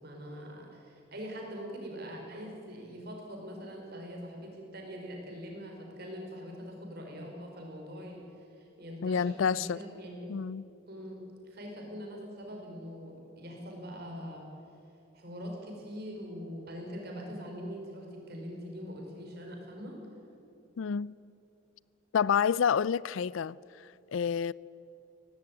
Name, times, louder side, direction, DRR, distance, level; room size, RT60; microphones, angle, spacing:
voice 1, 0.0-10.3 10.9-14.4 15.1-20.0, equal, 50° right, 4.9 m, -43 dB
voice 2, 9.0-9.8 10.3-10.6 20.8-21.1 22.1-24.5, left 7 dB, 75° left, 0.4 m, -29 dB
17.5 x 16.0 x 9.7 m
head